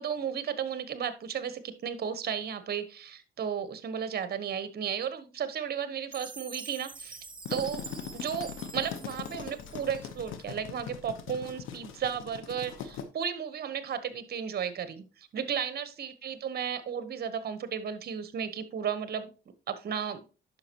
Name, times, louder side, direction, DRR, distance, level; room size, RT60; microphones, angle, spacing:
voice 1, 0.0-7.8 8.1-19.3 19.7-20.2, right 8 dB, 50° right, 12 dB, 1.1 m, -34 dB
Chime, 6.1-10.4, right 5 dB, 25° right, 0.9 m, -46 dB
sound 1, 7.2-13.0, left 8 dB, 85° left, 1.0 m, -40 dB
9.5 x 6.0 x 2.9 m, 0.34 s
cardioid pair, 90°, 20 cm